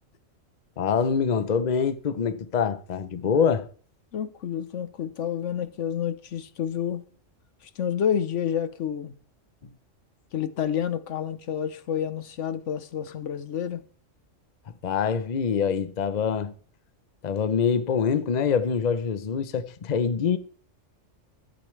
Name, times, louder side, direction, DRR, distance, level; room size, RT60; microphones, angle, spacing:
voice 1, 0.8-3.7 14.8-16.5 17.2-20.4, left 6 dB, 40° left, 0.7 m, -25 dB
voice 2, 4.1-7.0 7.6-9.1 10.3-13.8, left 9 dB, 70° left, 1.1 m, -29 dB
12.0 x 11.5 x 3.2 m
omnidirectional pair, 1.3 m